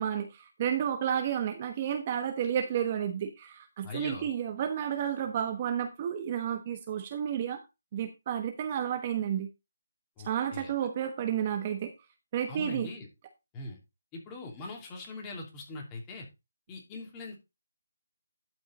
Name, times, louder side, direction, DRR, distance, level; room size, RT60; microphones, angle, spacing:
voice 1, 0.0-7.6 7.9-9.5 10.2-11.9 12.3-12.9, right 9 dB, 30° right, 6 dB, 1.1 m, -31 dB
voice 2, 3.8-4.3 10.2-10.7 12.5-13.1 13.5-13.8 14.1-16.2 16.7-17.4, left 3 dB, 15° left, 1 dB, 2.9 m, -41 dB
12.5 x 5.5 x 4.1 m, 0.24 s
figure-of-eight pair, 165°, 0 cm